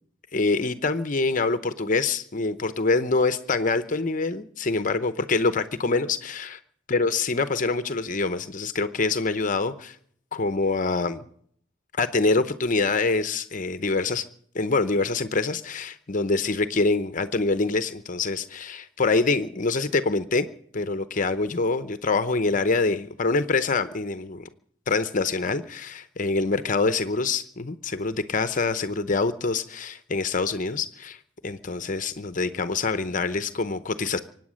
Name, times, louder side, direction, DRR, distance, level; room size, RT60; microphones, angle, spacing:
voice 1, 0.3-6.6 6.9-10.0 10.3-11.2 12.0-14.2 14.5-20.5 20.7-24.5 24.9-31.2 31.4-34.2, left 3 dB, 45° left, 11 dB, 0.8 m, -25 dB
24.5 x 9.2 x 6.4 m, 0.63 s
head